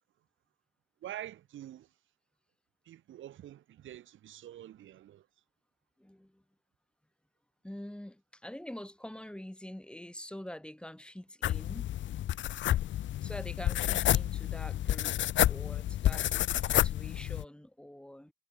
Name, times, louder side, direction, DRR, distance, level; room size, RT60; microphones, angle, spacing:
voice 1, 1.0-1.9 2.8-5.3, right 12 dB, 75° right, 6.2 m, -46 dB
voice 2, 6.0-6.4 7.6-11.9 13.2-15.2 15.5-18.3, left 1 dB, 5° left, 5.9 m, -45 dB
sound 1, 11.4-17.4, left 13 dB, 70° left, 0.9 m, -30 dB
cardioid pair, 90°, 20 cm